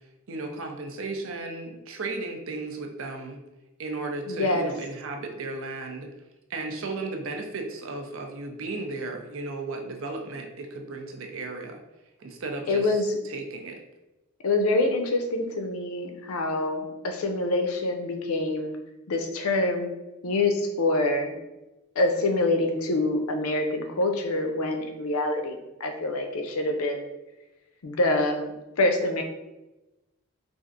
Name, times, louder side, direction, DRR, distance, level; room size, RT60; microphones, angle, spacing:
voice 1, 0.3-3.4 3.8-6.1 6.5-11.8 12.2-13.8, right 3 dB, 65° right, 3 dB, 0.5 m, -35 dB
voice 2, 4.3-4.7 12.7-13.2 14.4-18.8 19.1-19.9 20.2-21.4 22.0-25.6 25.8-27.1 27.8-29.2, left 2 dB, 80° left, 4 dB, 0.5 m, -26 dB
4.2 x 2.5 x 2.5 m, 1.0 s
head